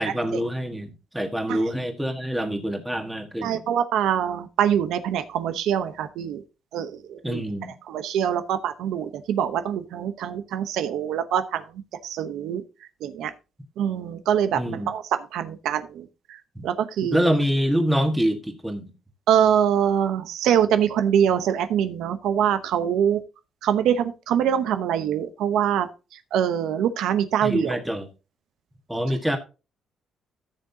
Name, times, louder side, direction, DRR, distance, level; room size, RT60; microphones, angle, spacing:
voice 1, 0.0-3.6 7.2-7.7 14.6-14.9 16.5-16.6 17.0-18.9 27.4-28.1 28.9-29.4, equal, 5° right, 1.6 m, -25 dB
voice 2, 3.4-6.4 6.7-7.4 7.9-11.6 12.0-12.6 13.0-13.3 13.8-17.2 19.3-23.2 23.6-25.9 26.3-27.8, right 9 dB, 85° right, 0.9 m, -24 dB
14.5 x 6.5 x 2.8 m
cardioid pair, 140°, 0 cm